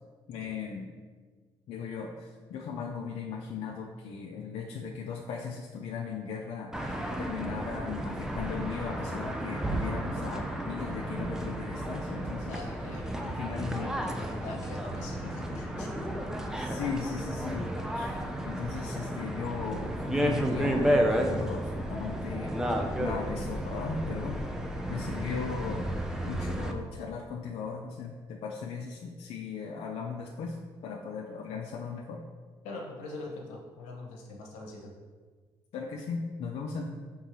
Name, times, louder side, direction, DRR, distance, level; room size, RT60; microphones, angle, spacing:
voice 1, 0.3-0.9 1.7-12.6 13.3-13.9 16.5-17.7 17.9-18.1 18.4-22.5 23.0-24.4 24.9-25.9 26.2-30.6 30.8-32.2 35.7-36.9, left 5 dB, 65° left, -1 dB, 0.5 m, -37 dB
sound 1, 6.7-26.7, equal, 5° right, 0.5 m, -32 dB
voice 2, 12.5-13.4 13.8-15.9 32.6-34.9, left 2 dB, 80° left, 0 dB, 0.8 m, -43 dB
4.6 x 3.6 x 3.0 m, 1.5 s
supercardioid pair, 60°, 12 cm